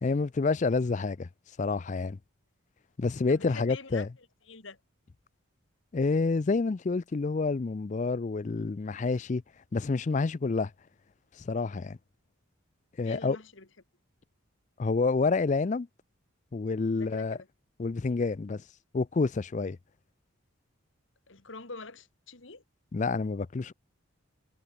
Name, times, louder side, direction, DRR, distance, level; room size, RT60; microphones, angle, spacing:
voice 1, 0.0-1.3 1.6-2.2 3.0-4.1 5.9-9.4 9.7-10.7 11.4-12.0 13.0-13.4 14.8-15.9 16.5-17.4 17.8-18.6 18.9-19.8 22.9-23.7, left 4 dB, 35° left, 0.4 m, -28 dB
voice 2, 3.3-4.8 13.0-13.7 16.9-17.5 21.3-22.6, left 3 dB, 65° left, 2.3 m, -45 dB
head